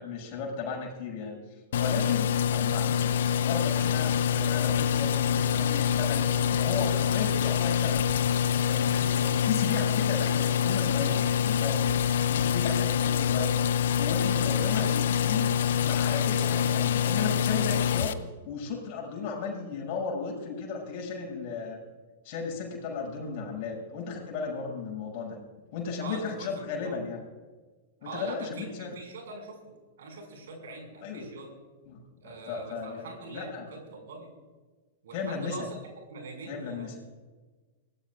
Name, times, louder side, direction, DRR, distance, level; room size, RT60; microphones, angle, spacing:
voice 1, 0.0-6.3 6.6-8.0 8.4-11.8 12.3-13.7 14.0-15.5 15.8-21.8 22.2-25.4 25.7-27.2 28.0-29.0 31.0-31.3 31.8-32.0 32.2-33.1 33.3-33.7 35.1-35.6 36.5-36.9, left 5 dB, 40° left, -2 dB, 6.3 m, -35 dB
sound 1, 1.7-18.1, left 8 dB, 60° left, 0.7 m, -26 dB
voice 2, 14.6-14.9 26.0-27.0 28.0-31.5 32.2-34.3 35.0-35.8 36.1-37.0, right 3 dB, 60° right, 2 dB, 5.6 m, -43 dB
24.5 x 18.5 x 2.5 m, 1.3 s
figure-of-eight pair, 100°, 0 cm